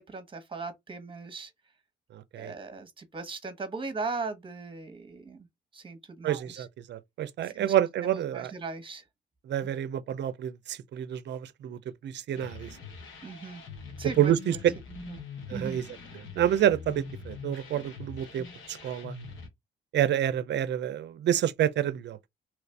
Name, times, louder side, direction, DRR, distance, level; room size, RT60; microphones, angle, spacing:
voice 1, 0.0-1.5 2.4-5.5 5.7-6.6 7.4-7.7 8.0-9.0 13.2-13.6 14.0-14.6 15.1-15.2 15.5-15.8, right 4 dB, 25° right, 1.1 m, -38 dB
voice 2, 2.1-2.5 6.2-8.5 9.4-12.8 14.2-14.7 15.5-15.8 16.1-19.2 19.9-22.3, right 11 dB, 60° right, 0.5 m, -28 dB
sound 1, 12.3-19.5, left 4 dB, 80° left, 1.2 m, -43 dB
3.1 x 2.5 x 3.3 m
cardioid pair, 90°, 20 cm